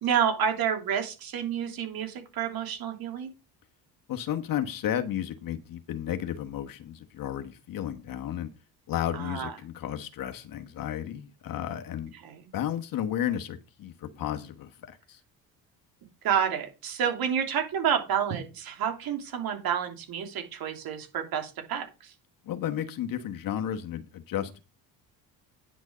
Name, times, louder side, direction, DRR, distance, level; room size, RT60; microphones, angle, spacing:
voice 1, 0.0-3.3 9.1-9.5 12.2-12.5 16.2-22.1, right 8 dB, 65° right, 3.1 m, -29 dB
voice 2, 4.1-8.5 8.9-12.1 12.5-15.2 22.4-24.6, left 10 dB, 60° left, 1.3 m, -33 dB
9.8 x 6.2 x 5.0 m
supercardioid pair, 80°, 38 cm